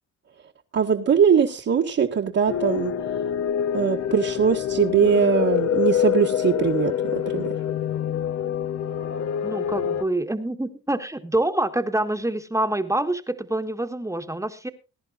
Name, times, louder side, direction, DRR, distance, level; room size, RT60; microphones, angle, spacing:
voice 1, 0.7-2.9 3.7-7.5, right 7 dB, 55° right, -3 dB, 1.7 m, -21 dB
sound 1, 2.5-10.0, left 9 dB, 55° left, 0.9 m, -26 dB
voice 2, 9.4-14.7, right 1 dB, 10° right, 7 dB, 1.5 m, -26 dB
21.5 x 10.5 x 2.5 m, 0.30 s
cardioid pair, 90°, 30 cm